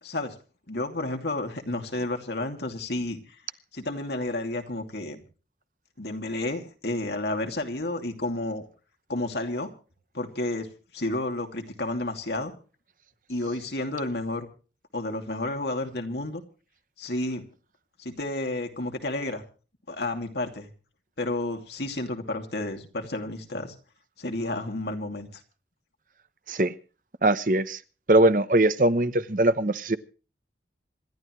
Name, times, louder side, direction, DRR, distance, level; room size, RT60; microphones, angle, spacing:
voice 1, 0.0-0.4 0.7-3.2 3.7-5.2 6.0-8.6 9.1-9.7 10.1-10.7 10.9-12.5 13.3-14.5 14.9-16.4 17.0-17.4 18.0-19.4 19.9-20.7 21.2-23.7 24.2-25.4, left 2 dB, 70° left, 2.7 m, -31 dB
voice 2, 27.2-27.8 28.1-30.0, right 1 dB, 50° right, 0.9 m, -21 dB
26.5 x 12.0 x 3.2 m
head